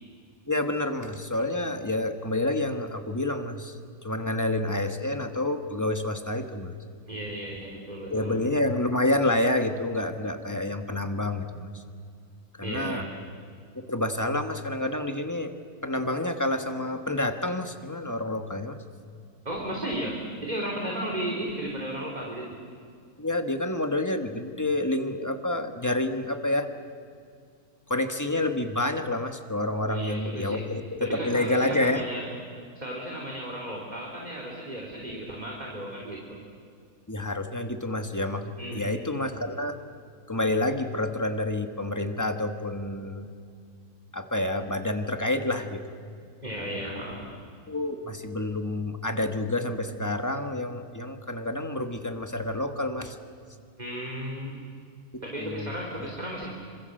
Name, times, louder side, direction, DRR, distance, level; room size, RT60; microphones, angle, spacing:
voice 1, 0.5-6.7 8.1-11.8 12.5-13.1 13.7-15.5 15.8-18.8 23.2-26.7 27.9-32.0 37.1-38.4 38.7-39.8 40.3-43.3 44.1-45.8 47.7-53.2 55.1-55.7 56.0-56.1, left 1 dB, 10° left, 6 dB, 1.5 m, -28 dB
voice 2, 7.1-8.3 12.6-13.1 19.5-22.5 29.8-30.6 31.0-32.3 32.8-36.4 38.6-38.9 46.4-47.3 53.8-54.6 55.2-56.5, right 1 dB, 25° right, -1 dB, 3.3 m, -34 dB
27.0 x 26.0 x 7.9 m, 2.2 s
omnidirectional pair, 1.7 m